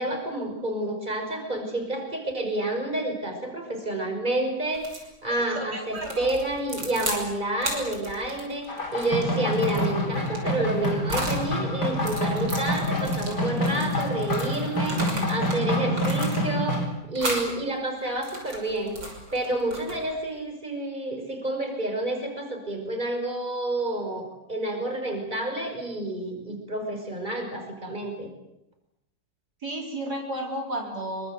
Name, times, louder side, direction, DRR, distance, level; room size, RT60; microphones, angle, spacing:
voice 1, 0.0-28.3, right 1 dB, 25° right, 4 dB, 5.7 m, -29 dB
sound 1, 4.7-5.1 6.0-7.2 7.6-11.4 11.9-15.6 15.9-16.7 17.2-17.5 18.0-20.2, right 2 dB, 75° right, 6.6 m, -35 dB
voice 2, 5.3-6.3 29.6-31.3, right 1 dB, 55° right, 0 dB, 5.1 m, -33 dB
sound 2, 8.7-16.9, left 1 dB, 60° left, 5.0 m, -27 dB
26.5 x 25.0 x 7.9 m, 0.88 s
omnidirectional pair, 2.0 m